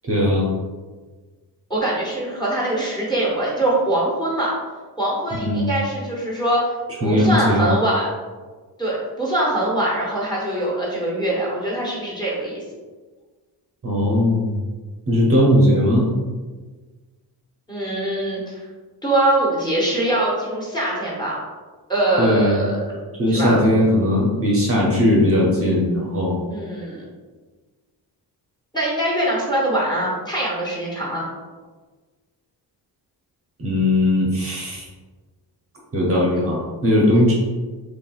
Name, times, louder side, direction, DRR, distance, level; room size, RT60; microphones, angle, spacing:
voice 1, 0.0-0.5 5.4-5.7 7.0-7.7 13.8-14.6 15.1-16.1 22.2-22.7 23.2-26.4 33.6-34.9 35.9-37.3, left 1 dB, 35° right, -4 dB, 0.7 m, -18 dB
voice 2, 1.7-4.6 5.0-6.7 7.0-8.1 8.8-12.6 17.7-18.6 19.0-21.4 21.9-22.8 23.3-23.6 26.5-27.0 28.7-31.3, right 1 dB, 10° left, -5 dB, 0.8 m, -23 dB
4.4 x 3.2 x 2.3 m, 1.4 s
wide cardioid pair, 175°, 42 cm